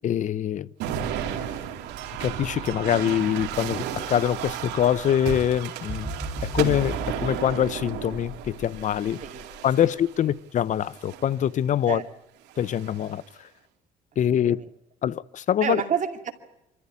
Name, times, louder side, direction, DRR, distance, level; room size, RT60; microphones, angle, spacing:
voice 1, 0.0-0.7 2.2-6.1 6.4-9.2 9.6-12.0 12.6-13.2 14.2-14.6 15.0-15.8, left 10 dB, 45° left, 0.7 m, -24 dB
sound 1, 0.8-10.2 10.9-11.4 12.5-13.2, right 9 dB, 90° right, 2.7 m, -34 dB
sound 2, 5.8-9.9 10.4-10.6, equal, 5° left, 7.6 m, -36 dB
voice 2, 15.6-16.3, right 8 dB, 45° right, 2.4 m, -29 dB
25.0 x 14.5 x 8.3 m
cardioid pair, 110°, 17 cm